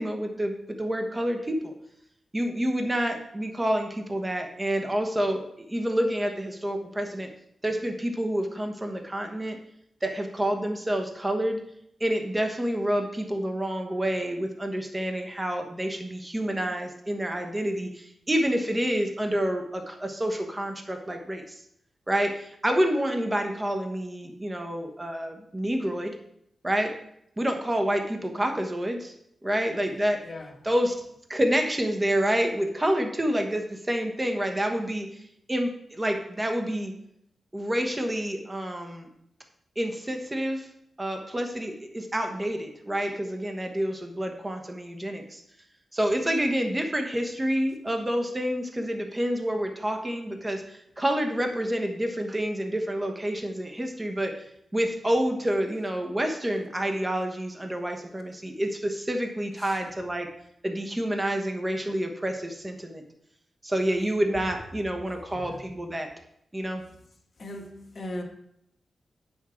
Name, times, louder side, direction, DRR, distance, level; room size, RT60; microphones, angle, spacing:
voice 1, 0.0-1.7 2.3-5.4 5.7-7.3 7.6-9.6 10.0-11.6 12.0-21.6 22.1-26.1 26.6-26.9 27.4-29.1 29.4-30.2 30.6-31.0 31.3-35.2 35.5-36.9 37.5-39.1 39.8-40.7 41.0-45.4 45.9-54.3 54.7-60.3 60.6-63.0 63.6-66.1 66.5-66.8, equal, 20° right, 4 dB, 1.2 m, -28 dB
voice 2, 30.2-30.6 59.6-59.8 65.1-65.6 67.4-68.2, left 1 dB, 45° left, 2 dB, 1.6 m, -39 dB
9.0 x 6.2 x 4.5 m, 0.74 s
cardioid pair, 75°, 0 cm